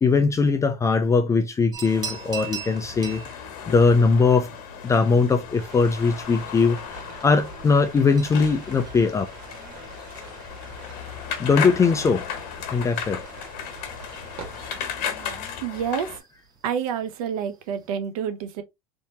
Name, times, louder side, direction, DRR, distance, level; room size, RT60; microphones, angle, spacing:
voice 1, 0.0-4.5 4.8-9.3 11.4-12.2 12.7-13.2, left 4 dB, 15° left, 0.4 m, -20 dB
sound 1, 1.7-17.9, right 6 dB, 20° right, 0.6 m, -44 dB
sound 2, 1.8-16.2, left 8 dB, 65° left, 1.2 m, -36 dB
sound 3, 5.6-14.8, right 3 dB, 50° right, 1.5 m, -44 dB
voice 2, 15.2-16.2 16.6-18.6, right 8 dB, 90° right, 0.7 m, -29 dB
3.5 x 2.8 x 2.7 m
supercardioid pair, 130°, 18 cm